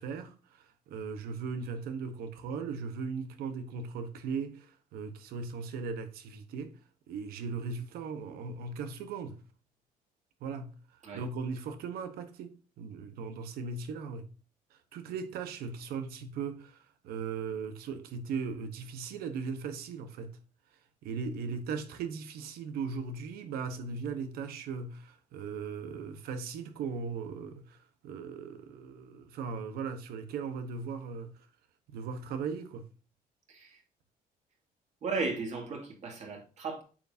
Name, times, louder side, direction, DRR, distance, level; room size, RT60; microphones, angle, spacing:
voice 1, 0.0-6.8 7.1-9.4 10.4-14.3 14.7-20.4 21.0-31.5 31.9-32.9, right 5 dB, 90° right, 1.2 m, -38 dB
voice 2, 33.5-33.8 35.0-36.8, right 4 dB, 50° right, 2.3 m, -35 dB
8.6 x 6.0 x 2.7 m
cardioid pair, 150°, 16 cm